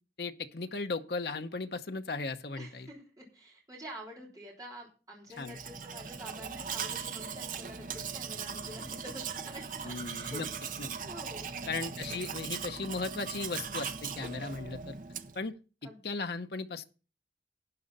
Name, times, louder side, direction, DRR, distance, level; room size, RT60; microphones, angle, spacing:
voice 1, 0.2-2.9 5.4-5.6 9.8-10.5 10.8-10.9 11.7-14.9 15.3-15.5 16.0-16.8, left 3 dB, 65° left, 0.8 m, -36 dB
voice 2, 2.6-10.4 11.0-11.5 15.8-16.0, equal, 20° right, 3.5 m, -48 dB
Domestic sounds home sounds, 5.4-15.5, right 6 dB, 50° right, 0.8 m, -39 dB
12.0 x 9.9 x 4.1 m
head